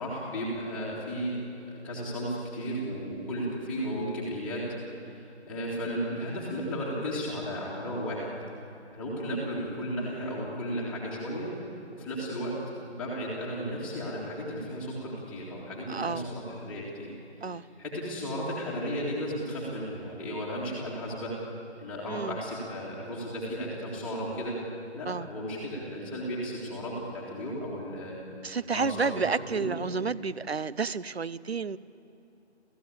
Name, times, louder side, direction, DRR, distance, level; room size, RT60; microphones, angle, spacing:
voice 1, 0.0-1.4 1.7-4.7 5.0-8.3 8.9-11.5 11.9-12.6 12.9-17.1 17.4-21.3 21.8-24.6 24.9-28.2 28.7-29.1 29.5-29.8, equal, 5° left, -6 dB, 2.1 m, -34 dB
voice 2, 15.9-16.3 17.4-17.6 22.1-22.4 25.0-25.3 28.4-31.8, right 5 dB, 65° right, 18 dB, 0.8 m, -31 dB
28.0 x 15.0 x 8.5 m, 3.0 s
figure-of-eight pair, 160°, 34 cm